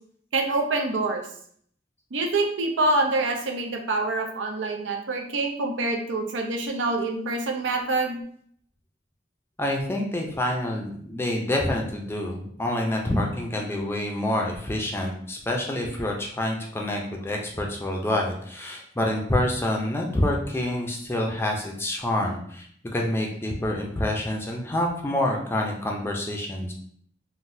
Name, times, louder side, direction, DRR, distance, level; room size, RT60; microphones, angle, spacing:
voice 1, 0.3-1.2 2.1-8.2, right 2 dB, 85° right, 3 dB, 0.6 m, -26 dB
voice 2, 9.6-22.7 22.9-26.7, left 1 dB, 15° left, 0 dB, 0.4 m, -27 dB
3.8 x 2.2 x 2.6 m, 0.62 s
head